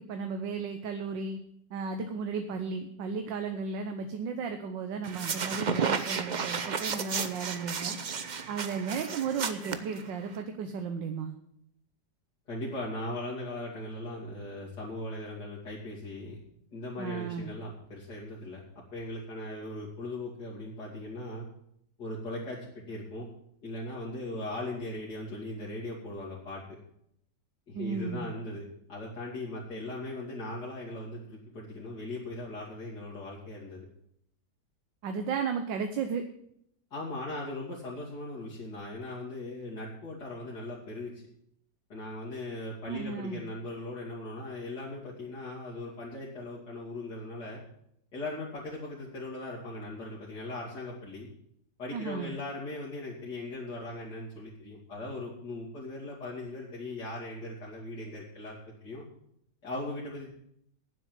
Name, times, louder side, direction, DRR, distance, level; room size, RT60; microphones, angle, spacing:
voice 1, 0.1-1.4 1.7-8.0 8.5-11.3 17.0-17.5 27.7-28.3 35.0-36.2 42.9-43.4 51.9-52.3, right 5 dB, 90° right, 6 dB, 1.6 m, -34 dB
sound 1, 5.0-10.4, right 6 dB, 60° right, 0.4 m, -33 dB
voice 2, 12.5-16.4 16.7-18.6 18.9-21.5 22.0-23.3 23.6-26.8 27.7-28.6 28.9-33.9 36.9-41.1 41.9-47.6 48.1-51.3 51.8-59.0 59.6-60.3, left 2 dB, 65° left, -7 dB, 3.0 m, -39 dB
9.7 x 7.7 x 9.3 m, 0.73 s
omnidirectional pair, 1.9 m